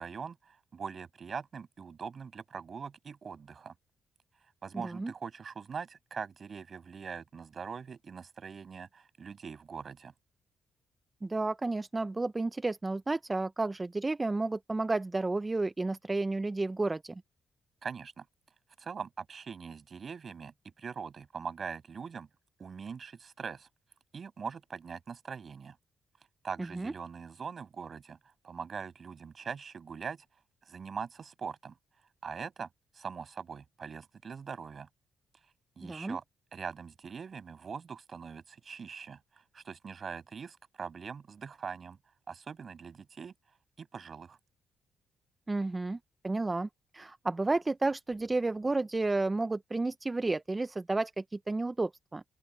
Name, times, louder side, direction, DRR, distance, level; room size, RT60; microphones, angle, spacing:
voice 1, 0.0-3.7 4.6-10.1 17.8-18.3 18.8-22.3 22.6-23.7 24.1-25.8 26.4-28.2 28.4-30.3 30.7-31.8 32.2-32.7 32.9-34.9 35.8-36.2 36.5-39.2 39.5-42.0 42.3-43.3 43.8-44.4, right 6 dB, 35° right, 7.4 m, -42 dB
voice 2, 4.7-5.1 11.2-17.2 26.7-26.9 35.8-36.2 45.5-46.0 46.2-52.2, right 2 dB, 15° right, 0.3 m, -31 dB
open air
cardioid pair, 165°, 0 cm